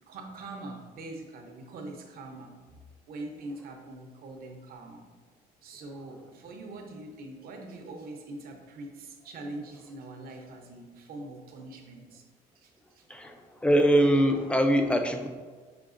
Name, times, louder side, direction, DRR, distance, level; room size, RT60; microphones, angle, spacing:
voice 1, 0.1-2.5 3.1-5.0 5.6-12.2 12.5-13.1, right 2 dB, 60° right, 2 dB, 0.8 m, -43 dB
voice 2, 13.1-15.3, equal, 5° left, 5 dB, 0.4 m, -23 dB
5.9 x 3.4 x 2.5 m, 1.4 s
cardioid pair, 110°, 17 cm